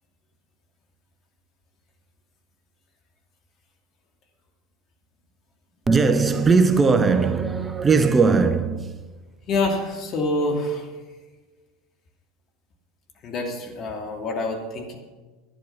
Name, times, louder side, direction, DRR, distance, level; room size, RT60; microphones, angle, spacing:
voice 1, 5.9-9.1, right 4 dB, 25° right, 0.9 m, -19 dB
voice 2, 9.5-10.9 13.2-15.0, left 2 dB, 45° left, 2.7 m, -26 dB
11.5 x 10.5 x 5.8 m
hypercardioid pair, 80°, 0 cm